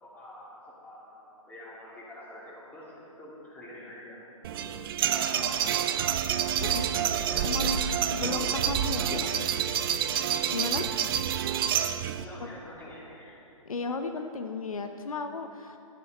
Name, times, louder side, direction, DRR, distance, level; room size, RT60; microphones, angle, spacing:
voice 1, 0.0-4.8 5.1-5.7 6.6-7.7 8.2-8.5 9.0-9.5 10.5-10.8 12.1-13.4, left 1 dB, 10° left, -7 dB, 2.6 m, -46 dB
sound 1, 4.4-12.2, right 9 dB, 40° right, 0.5 m, -28 dB
voice 2, 7.4-9.4 10.5-10.8 12.4-12.5 13.7-15.8, left 4 dB, 80° left, 6 dB, 0.7 m, -34 dB
12.5 x 6.9 x 5.2 m, 2.6 s
figure-of-eight pair, 125°, 18 cm